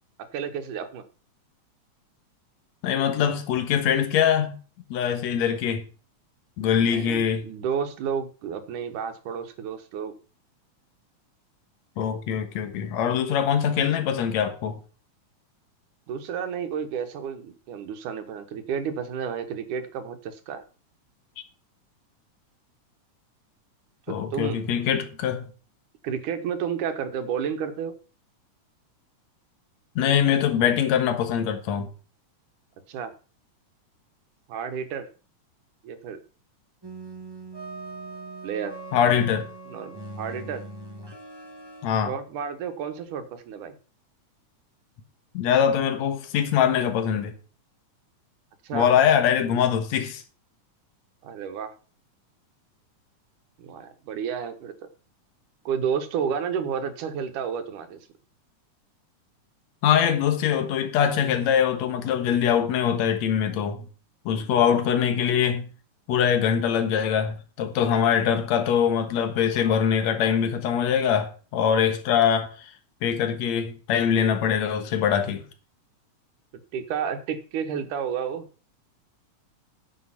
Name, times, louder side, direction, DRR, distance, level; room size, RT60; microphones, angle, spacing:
voice 1, 0.2-1.0 6.9-10.1 16.1-20.6 24.1-24.6 26.0-27.9 32.9-33.1 34.5-35.1 35.8-36.2 38.4-38.8 39.7-40.6 42.1-43.7 48.6-48.9 51.2-51.7 53.6-54.7 55.7-58.0 76.7-78.5, right 7 dB, 85° right, 2.7 m, -31 dB
voice 2, 2.8-4.6 4.9-5.9 6.6-7.5 12.0-14.8 24.1-25.5 30.0-31.9 38.9-39.5 41.8-42.1 45.3-47.3 48.7-50.2 59.8-63.9 64.3-65.7 66.1-72.7 73.0-75.4, left 8 dB, 65° left, 2.5 m, -23 dB
sound 1, 36.8-41.9, right 2 dB, 30° right, 0.4 m, -40 dB
9.8 x 7.5 x 5.8 m
omnidirectional pair, 3.5 m